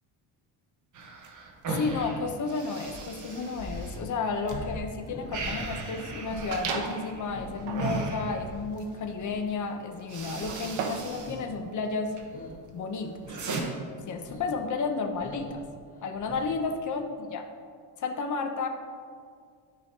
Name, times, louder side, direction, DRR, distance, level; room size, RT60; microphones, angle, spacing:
sound 1, 0.9-4.6 4.9-8.9 9.6-9.7 10.0-11.4 11.7-12.3 12.7-13.6, right 3 dB, 40° right, 1.0 m, -37 dB
voice 1, 1.7-12.1 12.7-13.2 14.1-15.6 16.0-17.4 18.0-18.7, left 4 dB, 40° left, 5 dB, 0.8 m, -32 dB
sound 2, 2.9-9.5 9.8-11.6 11.9-12.6 12.9-13.6 13.9-14.6 14.9-16.8, left 1 dB, 15° left, 1.3 m, -43 dB
sound 3, 6.5-7.1 7.6-11.2, right 5 dB, 70° right, 0.9 m, -36 dB
12.5 x 5.0 x 2.8 m, 2.2 s
cardioid pair, 140°, 49 cm